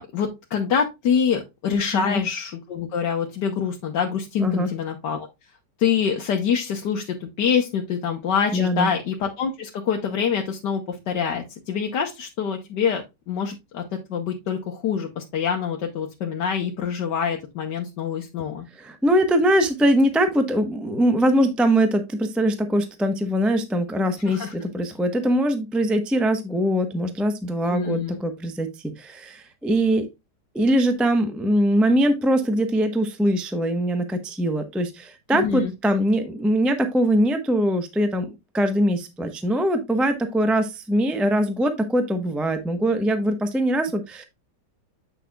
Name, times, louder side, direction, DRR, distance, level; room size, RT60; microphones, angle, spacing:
voice 1, 0.0-5.3 5.8-18.7 24.3-24.5 27.7-28.2 35.3-35.7, left 7 dB, 70° left, 1 dB, 1.7 m, -25 dB
voice 2, 4.4-4.7 8.5-8.9 18.7-28.7 29.0-30.1 30.5-44.2, equal, ahead, 7 dB, 0.7 m, -22 dB
9.1 x 5.9 x 2.3 m, 0.23 s
omnidirectional pair, 1.9 m